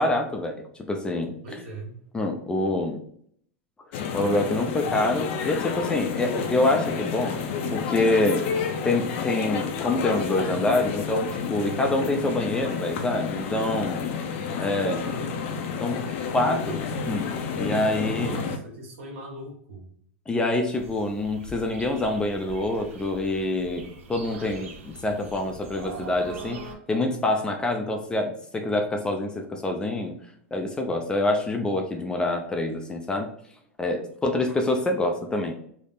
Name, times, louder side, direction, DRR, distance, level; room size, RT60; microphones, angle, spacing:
voice 1, 0.0-1.3 2.1-3.0 4.1-7.4 7.7-8.4 8.8-14.0 14.6-15.0 15.8-16.0 16.3-17.3 17.6-18.4 20.3-26.6 26.9-30.2 30.5-33.3 33.8-35.5, left 2 dB, 10° left, 3 dB, 0.4 m, -26 dB
voice 2, 1.4-2.0 14.7-15.7 18.0-19.9, right 1 dB, 65° right, -1 dB, 1.4 m, -40 dB
sound 1, 3.9-18.6, left 6 dB, 60° left, 0.5 m, -30 dB
sound 2, 20.7-26.7, right 3 dB, 90° right, 0.7 m, -43 dB
3.4 x 2.0 x 3.8 m, 0.65 s
supercardioid pair, 130°, 7 cm